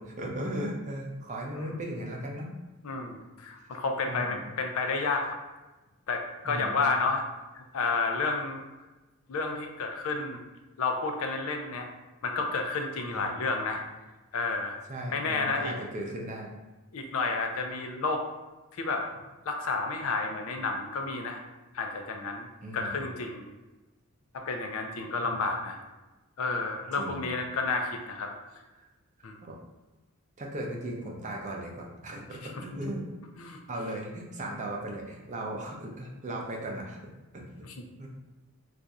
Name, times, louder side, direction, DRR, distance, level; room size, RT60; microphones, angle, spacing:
voice 1, 0.0-2.5 3.7-4.4 6.4-6.9 13.1-13.3 14.9-16.5 22.6-23.0 25.2-25.4 27.0-27.2 29.4-29.6 30.4-33.0 33.7-37.7 38.0-38.1, right 1 dB, 35° right, -1 dB, 0.5 m, -37 dB
voice 2, 2.8-5.4 6.1-7.2 7.5-8.6 9.3-10.4 10.8-11.9 12.2-13.8 14.3-14.8 15.1-15.7 16.9-18.2 18.7-19.1 19.5-21.4 21.7-22.5 22.7-23.5 24.3-25.8 26.4-28.3 29.2-29.3 32.5-32.6 33.4-33.6 37.6-37.9, left 3 dB, 65° left, 3 dB, 0.4 m, -31 dB
2.5 x 2.3 x 4.0 m, 1.1 s
head